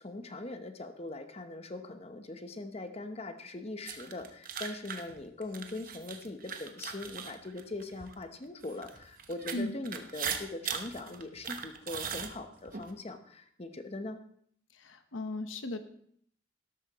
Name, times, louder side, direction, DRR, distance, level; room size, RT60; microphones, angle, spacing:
voice 1, 0.0-14.2, left 2 dB, 30° left, 8 dB, 0.9 m, -41 dB
sound 1, 3.8-8.1 8.6-12.9, right 7 dB, 45° right, 0.9 m, -39 dB
sound 2, 5.1-5.2 5.8-6.2 7.0-7.1 8.0-8.1 8.7-9.1 9.9-10.0 10.8-11.0 11.3-11.5 11.8-11.9 12.5-12.6, equal, 5° right, 5.2 m, -64 dB
voice 2, 14.8-15.8, left 2 dB, 85° left, 8 dB, 1.0 m, -36 dB
12.5 x 12.0 x 3.0 m, 0.64 s
head